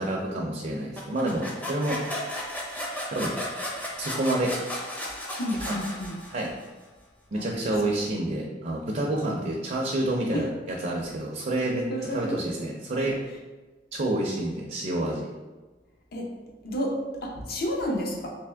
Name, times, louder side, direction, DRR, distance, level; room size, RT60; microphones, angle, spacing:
voice 1, 0.0-2.0 3.1-3.3 4.0-4.5 5.6-5.8 6.3-6.5 7.3-11.8 12.1-13.1 13.9-15.3, right 1 dB, 45° right, -1 dB, 0.5 m, -28 dB
sound 1, 1.0-6.6, left 1 dB, 10° left, 0.6 m, -34 dB
voice 2, 5.4-6.2 7.3-7.5 10.3-10.5 11.9-12.4 16.1-16.3 16.6-18.3, equal, 55° left, 0 dB, 0.7 m, -30 dB
3.4 x 3.1 x 3.3 m, 1.2 s
head